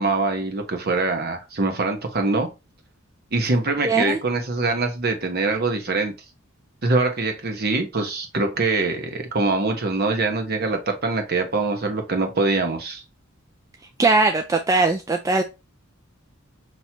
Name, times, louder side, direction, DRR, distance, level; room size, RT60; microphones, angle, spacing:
voice 1, 0.0-2.5 3.3-6.1 6.8-13.0, right 3 dB, 50° right, 1.0 m, -23 dB
voice 2, 3.8-4.2 14.0-15.4, right 3 dB, 15° right, 0.3 m, -20 dB
5.8 x 3.0 x 2.8 m
head